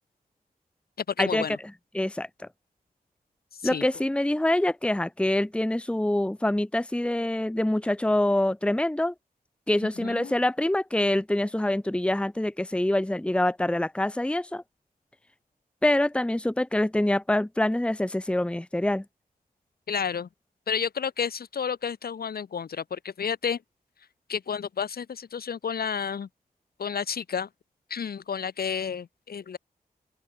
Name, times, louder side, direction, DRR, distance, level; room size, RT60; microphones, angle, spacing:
voice 1, 1.0-1.6 3.6-3.9 9.8-10.3 19.9-20.3 20.7-23.6 24.3-26.3 26.8-27.5 27.9-29.6, left 7 dB, 80° left, 6.6 m, -31 dB
voice 2, 1.9-2.3 3.6-9.1 9.7-14.6 15.8-19.0, left 1 dB, 5° left, 1.1 m, -25 dB
open air
wide cardioid pair, 100°, 16 cm